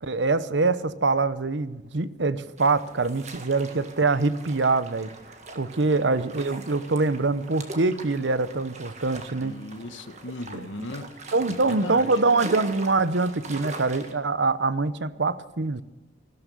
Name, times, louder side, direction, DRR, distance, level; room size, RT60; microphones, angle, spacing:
voice 1, 0.0-5.1 5.5-9.6 10.5-10.7 11.3-15.8, right 3 dB, 75° right, 14 dB, 0.9 m, -24 dB
sound 1, 2.6-14.1, right 3 dB, 35° right, 1.8 m, -42 dB
voice 2, 9.4-11.1 11.5-12.1, left 2 dB, 85° left, 11 dB, 1.2 m, -37 dB
16.5 x 12.5 x 6.9 m, 1.1 s
head